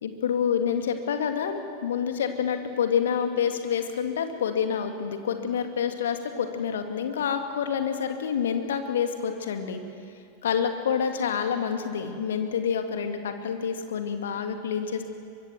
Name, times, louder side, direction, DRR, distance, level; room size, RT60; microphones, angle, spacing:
voice 1, 0.0-9.8 10.4-15.0, left 7 dB, 60° left, 6 dB, 2.2 m, -28 dB
23.5 x 23.5 x 7.6 m, 2.4 s
figure-of-eight pair, 90°, 0 cm